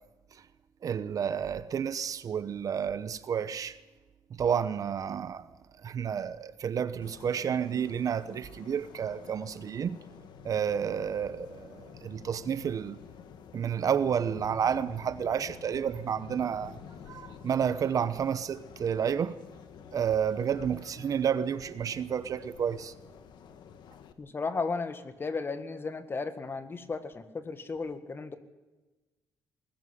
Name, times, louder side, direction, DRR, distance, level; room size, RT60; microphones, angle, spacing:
voice 1, 0.8-3.8 4.4-5.4 5.8-10.0 10.4-13.0 13.5-16.8 17.1-19.4 19.9-22.9, right 8 dB, 50° right, 0.9 m, -30 dB
sound 1, 7.0-24.1, left 7 dB, 70° left, 1.6 m, -50 dB
voice 2, 24.2-28.4, left 4 dB, 30° left, 1.8 m, -35 dB
20.0 x 14.5 x 10.0 m
cardioid pair, 105°, 8 cm